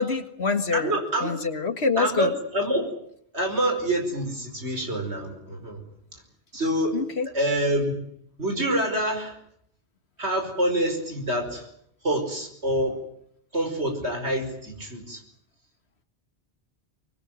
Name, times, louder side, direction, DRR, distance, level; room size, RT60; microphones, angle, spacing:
voice 1, 0.0-0.9 1.2-2.3 6.9-7.3, left 4 dB, 75° left, 9 dB, 2.1 m, -25 dB
voice 2, 0.7-1.4 2.0-2.9 3.3-5.8 6.5-7.0 7.3-8.0 8.4-9.4 10.2-11.7 12.0-13.0 13.5-15.2, right 1 dB, 85° right, 4 dB, 5.4 m, -26 dB
24.0 x 21.0 x 9.2 m, 0.71 s
omnidirectional pair, 1.1 m